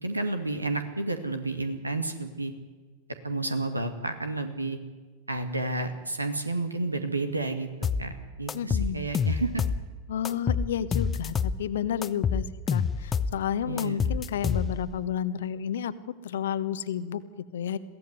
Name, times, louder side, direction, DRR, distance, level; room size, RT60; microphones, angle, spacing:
voice 1, 0.0-2.5 3.2-4.8 5.3-8.1 8.4-9.6 13.6-14.2, right 2 dB, 80° right, 8 dB, 2.2 m, -31 dB
sound 1, 7.8-8.1 8.5-9.8 10.2-11.6 12.0-13.4 13.8-15.0, left 6 dB, 20° left, 0.9 m, -27 dB
voice 2, 8.5-9.0 10.1-17.8, left 9 dB, 60° left, 14 dB, 1.2 m, -31 dB
22.0 x 16.0 x 9.6 m, 1.4 s
figure-of-eight pair, 90°, 0 cm